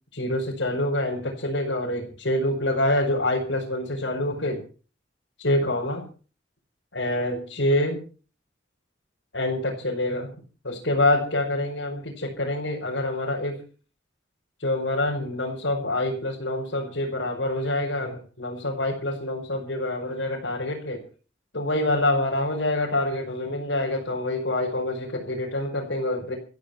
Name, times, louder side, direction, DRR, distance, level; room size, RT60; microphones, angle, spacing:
voice 1, 0.1-4.6 5.4-6.0 6.9-8.0 9.3-10.3 10.6-13.6 14.6-21.0 21.5-26.3, left 1 dB, 85° left, -2 dB, 5.5 m, -26 dB
15.0 x 15.0 x 5.9 m, 0.39 s
head